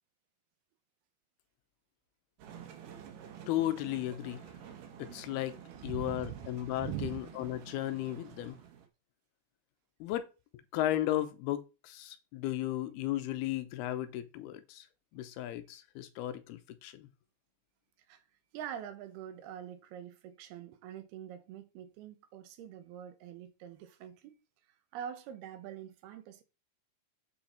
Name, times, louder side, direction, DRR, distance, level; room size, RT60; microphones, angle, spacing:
sound 1, 2.4-8.9, right 8 dB, 65° right, 2.7 m, -50 dB
voice 1, 3.5-4.4 5.0-8.6 10.0-10.3 10.7-14.9 15.1-17.1, left 13 dB, 85° left, 2.8 m, -35 dB
voice 2, 5.8-6.5 6.8-7.2 18.1-18.2 18.5-24.4 24.9-26.4, right 10 dB, 85° right, 3.1 m, -44 dB
8.7 x 5.9 x 4.3 m
omnidirectional pair, 4.5 m